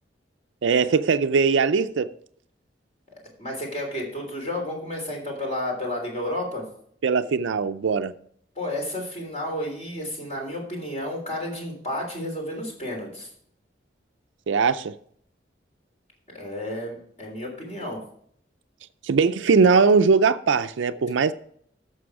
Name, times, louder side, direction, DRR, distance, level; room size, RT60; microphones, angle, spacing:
voice 1, 0.6-2.1 7.0-8.1 14.5-14.9 19.0-21.3, right 5 dB, 80° right, 0.4 m, -20 dB
voice 2, 3.4-6.6 8.5-13.3 16.3-18.0, left 1 dB, 35° left, 3.3 m, -31 dB
11.5 x 6.9 x 4.8 m
head